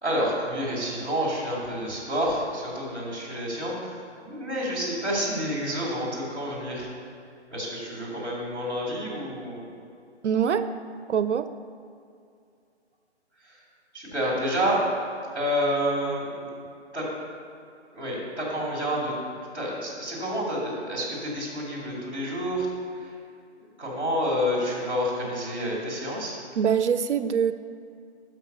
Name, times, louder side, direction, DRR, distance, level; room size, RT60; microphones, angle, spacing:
voice 1, 0.0-6.9 7.5-9.6 13.4-13.6 13.9-14.8 15.3-16.5 16.9-17.1 17.9-22.7 22.9-23.1 23.6-26.4, equal, 5° left, -14 dB, 1.5 m, -29 dB
voice 2, 10.2-10.7 11.1-11.5 26.6-27.5, right 7 dB, 80° right, 11 dB, 0.5 m, -23 dB
6.3 x 5.2 x 6.7 m, 2.4 s
hypercardioid pair, 170°, 34 cm